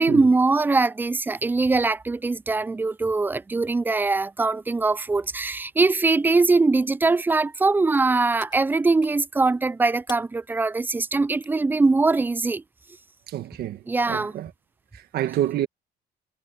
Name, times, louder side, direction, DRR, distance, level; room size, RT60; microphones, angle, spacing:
voice 1, 0.0-12.6 13.9-14.3, right 3 dB, 10° right, 0.4 m, -22 dB
sound 1, 7.9-9.3 9.6-9.7 9.9-10.2 10.7-11.0 11.4-11.6 13.6-13.7, left 5 dB, 25° left, 6.7 m, -45 dB
voice 2, 13.3-14.5 14.9-15.7, right 12 dB, 70° right, 1.5 m, -28 dB
cardioid pair, 110°, 17 cm